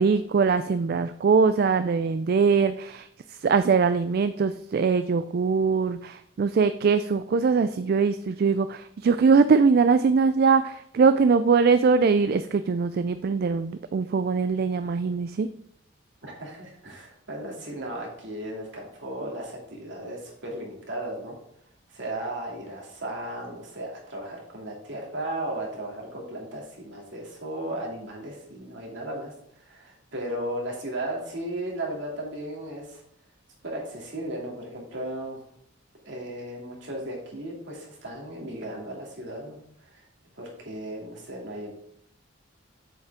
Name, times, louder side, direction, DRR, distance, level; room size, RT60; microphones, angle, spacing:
voice 1, 0.0-15.5, right 5 dB, 50° right, 11 dB, 0.3 m, -22 dB
voice 2, 16.2-21.4 21.9-33.0 33.6-35.4 36.0-40.0 40.4-41.7, right 1 dB, 65° right, -2 dB, 2.5 m, -35 dB
8.0 x 7.4 x 3.5 m, 0.73 s
head